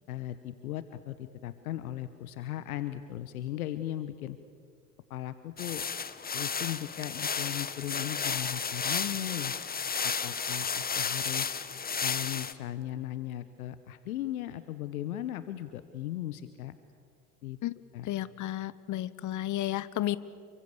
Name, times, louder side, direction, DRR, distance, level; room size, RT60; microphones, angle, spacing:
voice 1, 0.1-4.4 5.1-5.8 6.3-9.5 10.0-11.6 12.0-16.8 17.4-17.6 17.9-18.1, left 13 dB, 75° left, 13 dB, 1.1 m, -37 dB
sound 1, 5.6-12.5, left 6 dB, 20° left, 1.3 m, -33 dB
voice 2, 18.0-20.2, left 14 dB, 45° left, 18 dB, 1.2 m, -32 dB
29.5 x 24.0 x 7.1 m, 2.3 s
hypercardioid pair, 75°, 44 cm